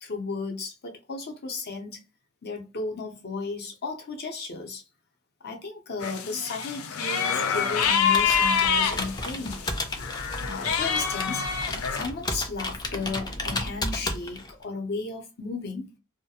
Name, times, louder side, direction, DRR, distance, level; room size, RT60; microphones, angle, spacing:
voice 1, 0.0-2.0 2.4-4.8 5.4-9.6 10.4-11.5 11.9-15.9, left 3 dB, 50° left, 0.7 m, -34 dB
sound 1, 6.0-9.7 10.0-12.0, left 6 dB, 85° left, 0.4 m, -26 dB
Computer keyboard, 7.7-14.6, left 2 dB, 20° left, 0.4 m, -33 dB
2.3 x 2.1 x 2.7 m
head